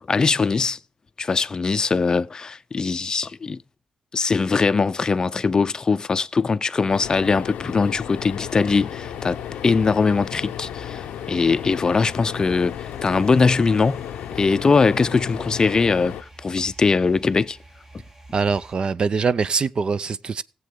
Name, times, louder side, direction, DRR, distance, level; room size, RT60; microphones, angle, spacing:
voice 1, 0.1-0.8 1.2-3.6 4.1-9.4 9.6-12.8 13.0-14.0 14.4-16.2 16.4-17.6, left 4 dB, 35° left, 0.5 m, -21 dB
sound 1, 6.9-16.2, left 11 dB, 85° left, 0.5 m, -34 dB
sound 2, 8.4-18.7, right 2 dB, 15° right, 1.4 m, -46 dB
voice 2, 18.3-20.4, right 5 dB, 45° right, 0.5 m, -23 dB
16.5 x 7.6 x 3.7 m
cardioid pair, 95°, 2 cm